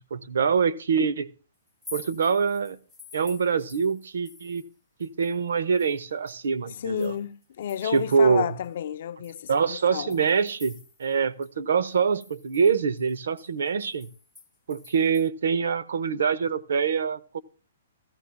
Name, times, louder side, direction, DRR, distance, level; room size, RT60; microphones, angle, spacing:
voice 1, 0.1-1.3 1.9-2.8 3.1-4.6 5.0-7.1 7.8-8.5 9.5-10.7 11.0-14.1 14.7-17.4, right 6 dB, 70° right, 0.6 m, -24 dB
sound 1, 1.7-4.7 5.0-8.2 8.6-8.7 9.2-11.2 11.4-11.5 11.9-15.3, left 4 dB, ahead, 1.1 m, -49 dB
voice 2, 6.7-10.3, left 9 dB, 40° left, 0.5 m, -32 dB
14.5 x 14.0 x 2.2 m
hypercardioid pair, 175°, 0 cm